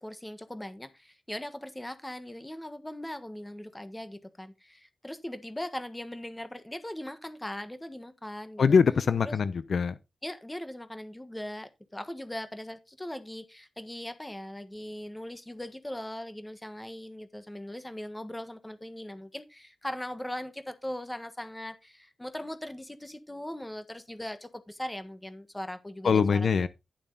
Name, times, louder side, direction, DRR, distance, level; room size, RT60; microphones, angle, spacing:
voice 1, 0.0-8.8 9.2-9.3 10.2-26.7, left 1 dB, 10° left, 1.3 m, -40 dB
voice 2, 8.6-10.0 26.0-26.7, left 6 dB, 65° left, 0.7 m, -23 dB
11.5 x 7.2 x 4.0 m
wide cardioid pair, 120°, 0 cm